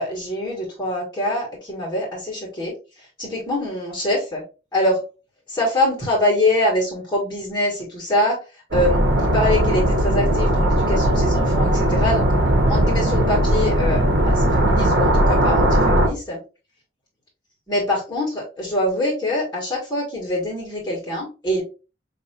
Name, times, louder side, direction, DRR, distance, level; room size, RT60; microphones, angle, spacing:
voice 1, 0.0-2.7 3.2-4.4 4.7-5.0 5.5-8.4 8.7-12.3 12.7-16.4 17.7-21.6, left 1 dB, 15° left, -4 dB, 1.5 m, -24 dB
sound 1, 8.7-16.1, right 1 dB, 85° right, 1.1 m, -18 dB
5.5 x 2.9 x 2.8 m, 0.32 s
head